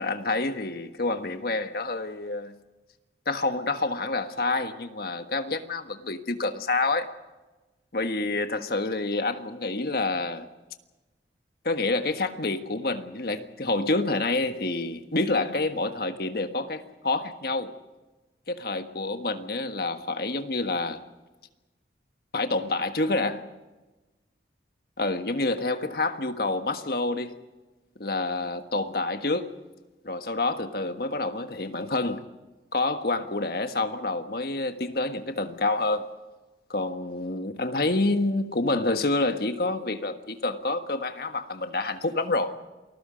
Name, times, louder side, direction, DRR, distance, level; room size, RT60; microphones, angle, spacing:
voice 1, 0.0-2.5 3.2-7.1 7.9-10.5 11.6-17.7 18.5-21.0 22.3-23.4 25.0-27.4 28.0-29.5 30.0-32.2 32.7-36.0 36.7-42.5, left 2 dB, 60° left, 1.5 m, -28 dB
28.5 x 20.0 x 5.2 m
head